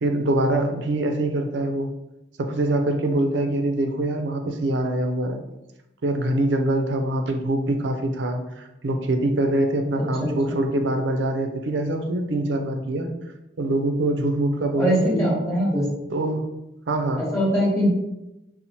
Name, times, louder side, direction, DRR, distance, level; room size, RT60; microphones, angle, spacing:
voice 1, 0.0-1.9 2.4-5.4 6.0-13.1 13.6-15.3 16.1-16.4 16.9-17.2, right 1 dB, 80° right, 5 dB, 0.4 m, -24 dB
voice 2, 10.2-10.6 14.8-15.9 17.2-17.9, equal, 15° left, -7 dB, 1.1 m, -22 dB
4.1 x 2.0 x 2.9 m, 0.93 s
head